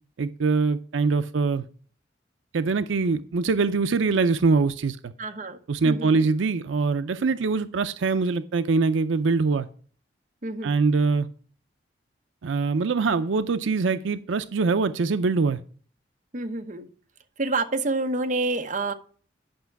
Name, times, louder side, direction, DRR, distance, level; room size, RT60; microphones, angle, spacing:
voice 1, 0.2-1.6 2.5-5.1 5.7-9.7 10.6-11.3 12.4-15.6, right 4 dB, 90° right, 11 dB, 0.5 m, -23 dB
voice 2, 5.2-5.6 5.8-6.3 10.4-10.7 16.3-16.9 17.4-18.9, right 2 dB, 40° right, 5 dB, 1.0 m, -28 dB
10.5 x 5.8 x 4.6 m, 0.43 s
head